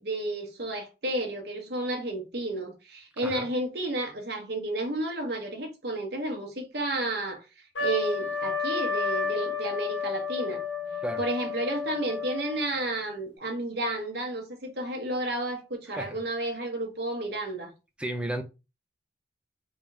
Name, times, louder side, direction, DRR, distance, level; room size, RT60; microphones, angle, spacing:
voice 1, 0.0-7.5 7.8-10.6 11.2-17.7, right 1 dB, 60° right, 1.0 m, -32 dB
Trumpet, 7.7-12.8, left 4 dB, 85° left, 1.3 m, -31 dB
voice 2, 18.0-18.4, right 1 dB, 5° right, 0.5 m, -33 dB
3.6 x 2.7 x 3.4 m
head